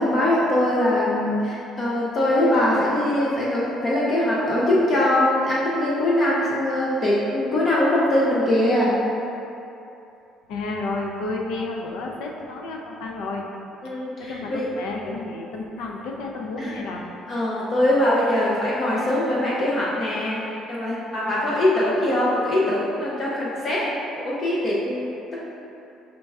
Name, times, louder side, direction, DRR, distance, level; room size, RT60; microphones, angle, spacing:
voice 1, 0.0-9.0 13.8-14.7 16.6-16.9 17.3-25.4, left 1 dB, 35° left, -6 dB, 0.6 m, -22 dB
voice 2, 10.5-13.5 14.2-17.0, left 2 dB, 85° left, 0 dB, 0.5 m, -31 dB
5.2 x 4.4 x 2.3 m, 2.8 s
cardioid pair, 140°, 0 cm